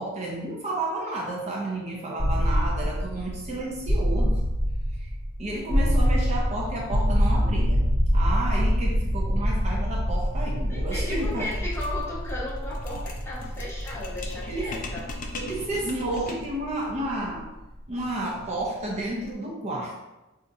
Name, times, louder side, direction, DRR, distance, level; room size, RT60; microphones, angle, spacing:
voice 1, 0.0-4.5 5.0-5.1 5.4-7.8 8.1-11.5 14.5-14.7 15.3-17.5 17.9-20.0, right 1 dB, 30° right, -2 dB, 0.5 m, -31 dB
sound 1, 2.2-18.0, equal, 70° right, 0.8 m, -26 dB
voice 2, 10.7-15.1, left 1 dB, 10° left, -6 dB, 0.7 m, -35 dB
sound 2, 10.9-16.6, left 2 dB, 40° left, 0.4 m, -40 dB
4.1 x 2.4 x 2.6 m, 1.0 s
head